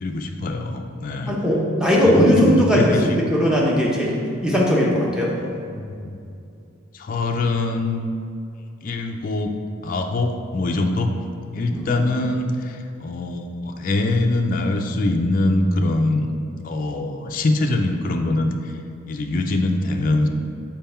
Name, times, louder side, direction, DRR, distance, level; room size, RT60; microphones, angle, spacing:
voice 1, 0.0-1.3 1.9-3.0 5.7-6.4 6.9-8.1 8.8-9.5 9.8-11.1 11.5-16.3 16.6-18.7 19.1-20.3, left 2 dB, 40° left, 3 dB, 0.4 m, -23 dB
voice 2, 1.3-5.3 11.7-12.0, equal, 5° right, -4 dB, 0.9 m, -19 dB
5.5 x 4.5 x 4.3 m, 2.5 s
head